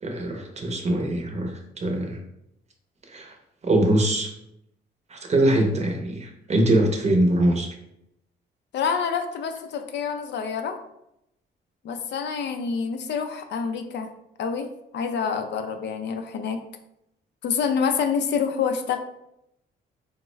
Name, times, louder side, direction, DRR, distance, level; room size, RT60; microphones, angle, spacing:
voice 1, 0.0-2.2 3.1-3.3 3.6-4.3 5.1-7.7, right 1 dB, 35° right, 3 dB, 0.6 m, -23 dB
voice 2, 8.7-10.8 11.8-14.1 14.4-14.7 14.9-16.6 17.4-19.0, left 6 dB, 60° left, 5 dB, 0.4 m, -27 dB
3.4 x 2.1 x 3.1 m, 0.81 s
cardioid pair, 90°, 20 cm